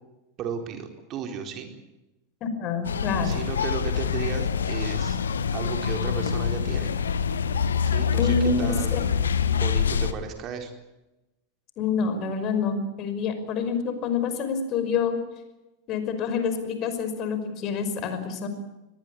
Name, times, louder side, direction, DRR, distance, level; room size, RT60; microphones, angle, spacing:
voice 1, 0.4-1.7 3.2-5.2 5.5-6.9 7.8-9.1 9.5-10.7, right 7 dB, 40° right, 4 dB, 4.3 m, -34 dB
voice 2, 2.4-3.4 8.2-9.0 11.8-15.1 15.9-18.5, left 5 dB, 40° left, 9 dB, 5.5 m, -27 dB
sound 1, 2.8-10.1, left 7 dB, 75° left, 1.4 m, -25 dB
23.5 x 19.5 x 8.8 m, 0.98 s
figure-of-eight pair, 85°, 0 cm